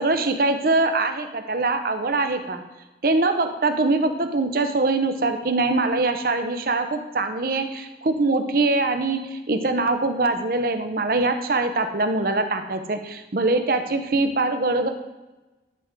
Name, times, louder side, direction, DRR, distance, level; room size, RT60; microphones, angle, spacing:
voice 1, 0.0-2.6 3.0-14.9, right 3 dB, 55° right, 7 dB, 0.7 m, -23 dB
11.0 x 4.8 x 3.7 m, 1.1 s
head